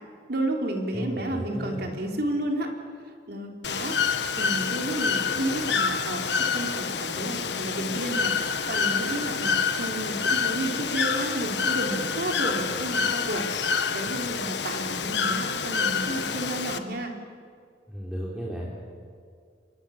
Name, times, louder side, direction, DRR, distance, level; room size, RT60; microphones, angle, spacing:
voice 1, 0.3-2.7 3.3-4.0 4.4-8.4 8.7-17.1, right 1 dB, 55° right, 2 dB, 3.6 m, -31 dB
voice 2, 0.9-1.8 17.9-18.7, equal, 5° right, -5 dB, 3.5 m, -34 dB
Bird / Water, 3.6-16.8, left 5 dB, 65° left, 1.5 m, -27 dB
27.5 x 23.5 x 7.3 m, 2.2 s
head